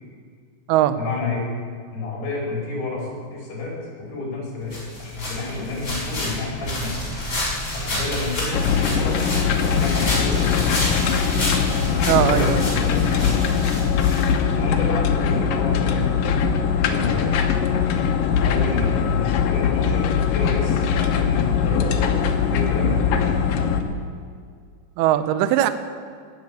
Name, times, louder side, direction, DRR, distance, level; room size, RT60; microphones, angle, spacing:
voice 1, 1.0-1.4 1.9-4.7 5.0-7.2 7.7-9.2 9.5-10.9 12.1-13.6 14.4-16.3 16.6-17.4 18.3-22.2 22.5-23.4, left 2 dB, 55° left, -3 dB, 6.2 m, -30 dB
sound 1, 4.7-14.7, left 1 dB, 25° left, 5.1 m, -29 dB
sound 2, 8.5-23.8, left 7 dB, 85° left, 1.9 m, -21 dB
voice 2, 12.1-12.7 14.6-14.7 25.0-25.7, right 12 dB, 85° right, 11 dB, 2.2 m, -20 dB
20.0 x 8.2 x 8.7 m, 2.1 s
omnidirectional pair, 5.5 m